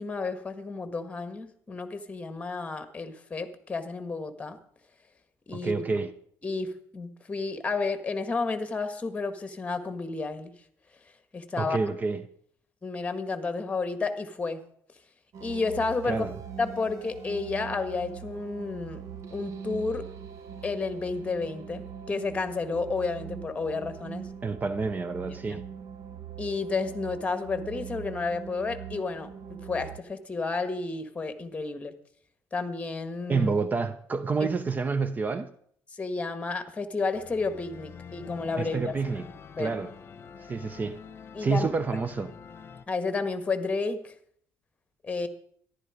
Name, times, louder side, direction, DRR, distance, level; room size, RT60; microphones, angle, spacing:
voice 1, 0.0-4.6 5.5-5.9 6.4-10.5 11.3-11.8 12.8-14.6 15.4-16.3 16.6-19.0 19.3-20.0 20.6-24.3 25.2-25.6 26.4-31.9 32.5-33.5 34.4-34.5 35.9-39.0 39.6-39.7 41.3-41.7 42.9-44.1 45.0-45.3, left 4 dB, 20° left, 1.6 m, -31 dB
voice 2, 5.6-6.1 11.6-12.2 16.1-16.3 24.4-25.6 33.3-35.5 38.6-39.3 39.6-39.9 40.5-41.0 41.4-42.3, right 4 dB, 30° right, 0.6 m, -28 dB
sound 1, 15.3-30.0, right 7 dB, 60° right, 1.2 m, -42 dB
sound 2, 37.1-42.9, left 6 dB, 40° left, 1.2 m, -46 dB
14.0 x 11.5 x 5.0 m
cardioid pair, 105°, 6 cm